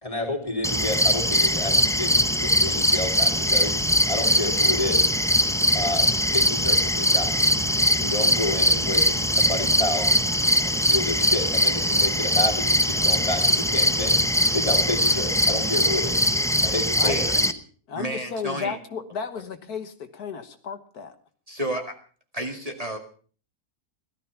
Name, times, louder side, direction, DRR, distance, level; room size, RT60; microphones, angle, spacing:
voice 1, 0.0-3.7 4.1-5.1 5.7-10.1 10.6-14.2 14.5-16.2 16.6-17.3, left 2 dB, 20° left, 3 dB, 3.7 m, -30 dB
sound 1, 0.6-17.5, equal, 5° left, 0.4 m, -21 dB
voice 2, 17.0-17.5 17.9-21.2, left 6 dB, 75° left, 8 dB, 1.8 m, -33 dB
voice 3, 17.9-18.8 21.5-22.0 22.3-23.0, right 1 dB, 25° right, 2 dB, 2.2 m, -30 dB
17.5 x 13.5 x 5.8 m, 0.43 s
omnidirectional pair, 1.6 m